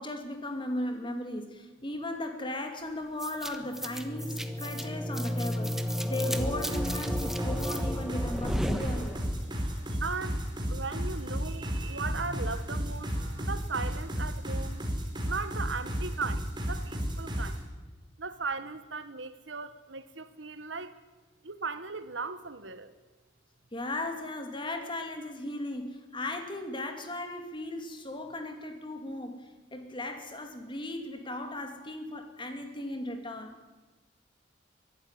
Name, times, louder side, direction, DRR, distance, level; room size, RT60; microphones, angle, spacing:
voice 1, 0.0-9.2 23.7-29.4 29.7-33.6, left 1 dB, 25° left, 2.6 m, -37 dB
sound 1, 3.2-9.5, equal, ahead, 1.4 m, -33 dB
sound 2, 6.3-17.6, equal, 25° right, 4.2 m, -33 dB
voice 2, 9.9-14.8 15.2-17.6 18.2-20.9 21.4-22.9, right 4 dB, 75° right, 1.4 m, -37 dB
23.0 x 12.5 x 9.9 m
head